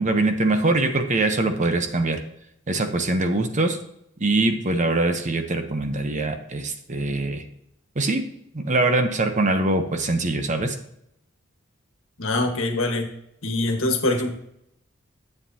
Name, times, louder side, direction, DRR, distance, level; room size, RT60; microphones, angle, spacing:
voice 1, 0.0-2.2 2.7-3.8 4.2-7.4 8.0-8.3 8.5-10.7, right 2 dB, 35° right, 6 dB, 0.9 m, -23 dB
voice 2, 12.2-13.1 13.4-14.3, left 2 dB, 75° left, 3 dB, 1.5 m, -23 dB
10.0 x 7.6 x 2.8 m, 0.76 s
head